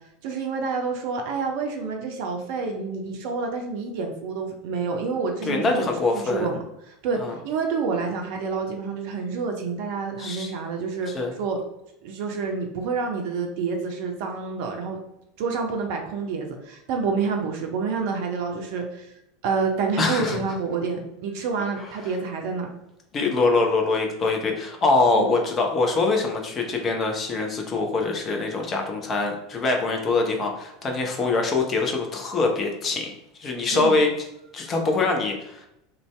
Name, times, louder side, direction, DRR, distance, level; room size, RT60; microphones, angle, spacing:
voice 1, 0.2-5.9 6.1-7.2 7.4-11.1 11.4-11.6 12.0-15.0 15.4-19.1 19.4-22.7 25.1-25.3 33.7-34.0, right 5 dB, 55° right, 3 dB, 0.5 m, -28 dB
voice 2, 5.4-6.5 7.2-7.3 10.2-10.5 11.1-11.3 20.0-20.4 21.8-21.9 23.1-33.1 33.4-34.1 34.5-35.6, left 3 dB, 30° left, 2 dB, 0.6 m, -24 dB
2.6 x 2.2 x 3.2 m, 0.82 s
figure-of-eight pair, 80°, 0 cm